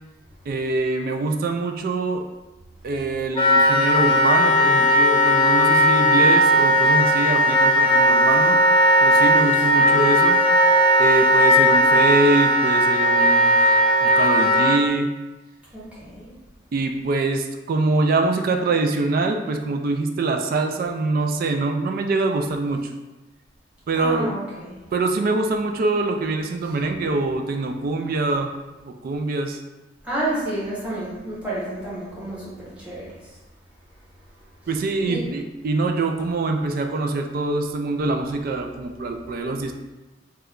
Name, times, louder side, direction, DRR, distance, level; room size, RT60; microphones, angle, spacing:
voice 1, 0.5-2.3 2.8-8.6 9.0-10.4 11.0-13.6 14.0-15.1 16.7-22.9 23.9-24.3 24.9-28.6 28.8-29.6 34.7-39.7, right 3 dB, 55° right, 5 dB, 0.3 m, -24 dB
Wind instrument woodwind instrument, 3.3-14.8, equal, 30° left, 0.3 m, -17 dB
voice 2, 15.7-16.3 23.9-24.7 30.0-33.3 35.1-35.2, right 1 dB, 5° right, -9 dB, 1.1 m, -30 dB
3.0 x 2.2 x 3.6 m, 1.1 s
head